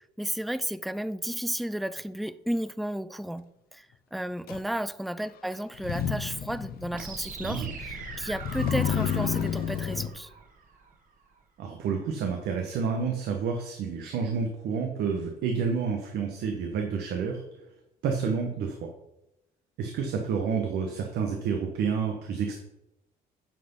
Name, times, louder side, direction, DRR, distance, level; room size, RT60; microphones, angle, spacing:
voice 1, 0.2-10.3, right 1 dB, ahead, 0.3 m, -33 dB
Motor vehicle (road), 4.5-4.6 5.7-10.1, left 8 dB, 65° left, 0.9 m, -31 dB
sound 1, 6.9-10.9, right 4 dB, 50° right, 2.0 m, -41 dB
voice 2, 7.4-7.7 11.6-17.4 18.0-18.9 19.8-22.6, right 6 dB, 75° right, 1.3 m, -29 dB
9.3 x 6.0 x 5.5 m
cardioid pair, 110°, 17 cm